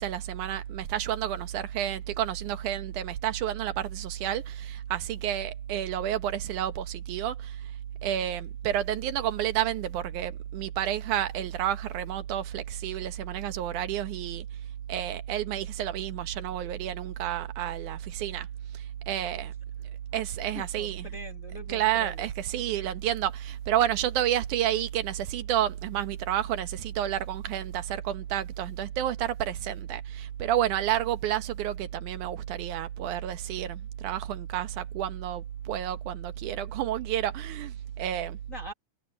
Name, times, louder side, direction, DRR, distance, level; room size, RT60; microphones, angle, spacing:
voice 1, 0.0-7.7 8.0-14.5 14.9-18.5 18.7-19.5 20.1-21.2 21.7-38.4, right 11 dB, 85° right, 2.6 m, -30 dB
voice 2, 20.5-22.3 38.5-38.7, left 2 dB, 45° left, 1.0 m, -43 dB
omnidirectional pair, 3.4 m